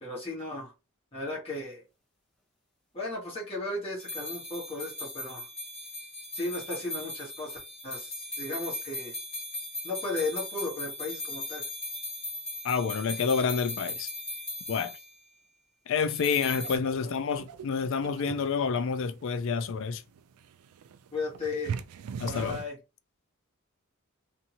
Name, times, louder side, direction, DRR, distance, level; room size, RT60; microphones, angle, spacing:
voice 1, 0.0-0.7 1.1-1.8 2.9-5.5 6.3-9.1 9.8-11.7 17.0-17.1 21.1-21.8 22.2-22.8, left 2 dB, 25° left, 1.2 m, -35 dB
sound 1, 4.0-15.1 16.1-16.8, left 1 dB, 5° left, 0.9 m, -38 dB
voice 2, 12.6-14.1 14.7-14.9 15.9-20.0 22.2-22.6, left 5 dB, 60° left, 0.4 m, -28 dB
sound 2, 16.1-22.7, right 6 dB, 85° right, 0.3 m, -42 dB
2.6 x 2.6 x 2.8 m
head